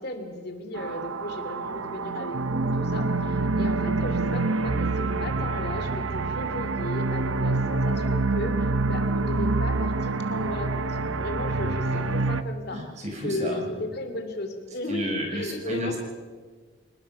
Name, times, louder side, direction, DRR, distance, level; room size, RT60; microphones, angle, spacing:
voice 1, 0.0-12.8 13.2-15.9, left 2 dB, 55° left, 6 dB, 2.8 m, -35 dB
sound 1, 0.7-12.4, right 3 dB, 85° right, 0.9 m, -26 dB
voice 2, 12.7-13.8 14.9-16.0, equal, 35° right, 0 dB, 6.0 m, -32 dB
28.5 x 19.5 x 5.8 m, 1.5 s
head